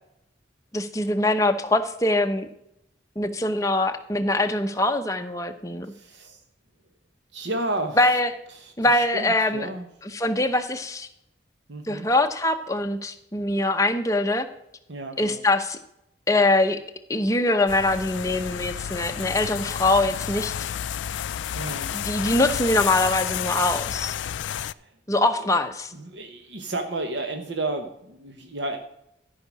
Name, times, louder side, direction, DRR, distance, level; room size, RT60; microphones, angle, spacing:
voice 1, 0.7-2.5 3.2-5.9 8.0-8.3 8.8-9.7 10.0-11.1 11.9-14.5 15.2-15.8 16.3-16.8 17.1-20.5 21.9-24.2 25.1-25.9, left 2 dB, 15° left, 6 dB, 0.8 m, -23 dB
voice 2, 5.9-6.4 7.3-8.1 8.5-9.9 11.7-12.1 14.9-15.4 21.5-21.9 24.6-24.9 25.9-28.8, right 2 dB, 75° right, 5 dB, 1.1 m, -32 dB
sound 1, 17.7-24.7, left 10 dB, 80° left, 0.3 m, -31 dB
13.0 x 5.7 x 6.2 m, 0.78 s
head